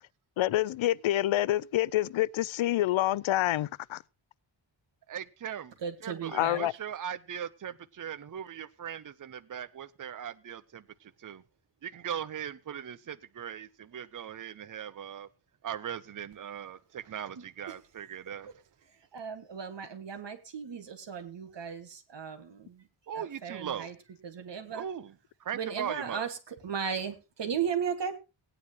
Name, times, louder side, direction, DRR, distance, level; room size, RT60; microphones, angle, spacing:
voice 1, 0.4-4.0 6.3-6.7, left 14 dB, 85° left, 0.5 m, -27 dB
voice 2, 5.1-5.7 6.0-11.4 11.8-15.3 15.6-18.5 23.1-23.9 24.7-25.1 25.4-26.2, right 9 dB, 45° right, 0.7 m, -39 dB
voice 3, 5.8-6.6 17.4-17.8 19.1-22.8 23.2-23.9 24.2-24.8 25.5-28.2, right 7 dB, 65° right, 1.8 m, -36 dB
18.0 x 9.7 x 2.9 m
wide cardioid pair, 150°, 46 cm